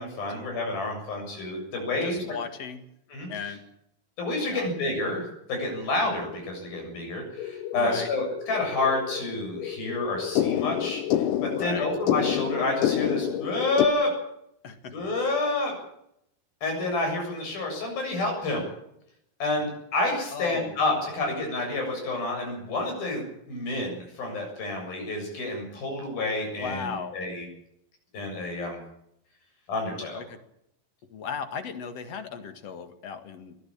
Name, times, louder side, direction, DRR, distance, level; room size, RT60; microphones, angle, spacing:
voice 1, 0.0-2.2 3.1-3.3 4.2-14.1 14.9-15.7 16.6-18.7 19.4-27.5 28.1-28.8 29.7-30.2, left 2 dB, 85° left, 2 dB, 9.4 m, -29 dB
voice 2, 1.9-2.8 3.3-3.6 4.5-4.7 7.7-8.1 11.5-11.9 14.6-14.9 19.6-19.7 20.3-20.8 21.1-21.3 26.5-27.2 30.0-30.4 31.1-33.6, left 6 dB, 50° left, 9 dB, 2.7 m, -36 dB
sound 1, 7.4-13.9, left 11 dB, 70° left, 2.3 m, -29 dB
22.0 x 15.0 x 8.8 m, 0.77 s
omnidirectional pair, 4.1 m